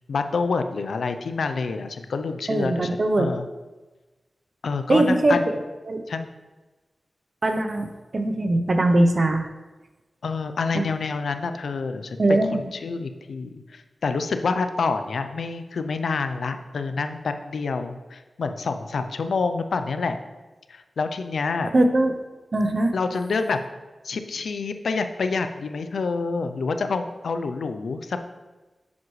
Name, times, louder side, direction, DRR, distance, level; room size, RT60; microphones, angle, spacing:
voice 1, 0.1-3.5 4.6-5.5 6.1-6.3 10.2-12.2 12.5-20.2 20.7-21.7 22.9-23.6 24.0-28.2, left 4 dB, 85° left, 8 dB, 0.4 m, -27 dB
voice 2, 2.5-3.3 4.9-5.6 5.9-6.0 7.4-9.5 10.7-10.8 12.2-12.7 21.7-22.1 22.5-22.9, right 2 dB, 55° right, 6 dB, 0.7 m, -21 dB
7.2 x 5.9 x 3.1 m, 1.2 s
cardioid pair, 45°, 0 cm